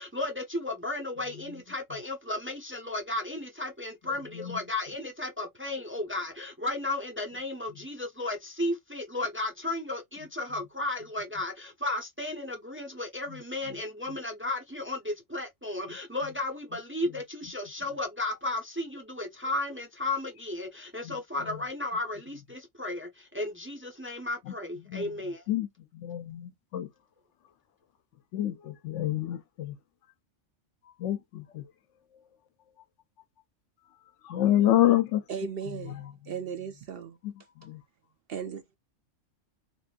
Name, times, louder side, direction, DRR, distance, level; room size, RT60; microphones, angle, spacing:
voice 1, 0.0-25.5, left 2 dB, 15° right, 0.5 m, -34 dB
voice 2, 25.9-26.9 28.3-29.8 31.0-31.6 34.2-35.2 37.6-37.8, left 13 dB, 75° left, 0.9 m, -27 dB
voice 3, 35.3-37.2 38.3-38.6, right 7 dB, 60° right, 0.7 m, -36 dB
3.3 x 2.5 x 2.3 m
omnidirectional pair, 1.3 m